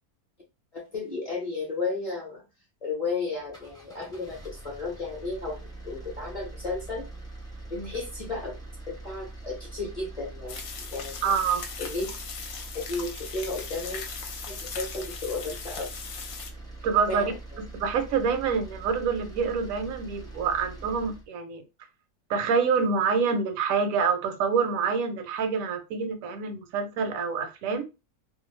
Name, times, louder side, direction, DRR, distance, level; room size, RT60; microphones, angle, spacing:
voice 1, 0.7-2.4 2.8-5.6 5.8-7.0 7.7-8.6 8.9-10.6 10.9-11.3 11.8-12.1 12.7-14.0 14.5-15.9 17.1-17.6, left 3 dB, 30° left, -3 dB, 0.7 m, -33 dB
sound 1, 3.4-21.3, right 2 dB, 5° left, 0.5 m, -43 dB
sound 2, 10.5-16.5, left 5 dB, 70° left, 0.9 m, -39 dB
voice 2, 11.2-11.6 16.8-17.3 17.8-21.6 22.3-27.8, right 5 dB, 70° right, 7 dB, 0.9 m, -26 dB
2.5 x 2.2 x 3.2 m, 0.27 s
omnidirectional pair, 1.6 m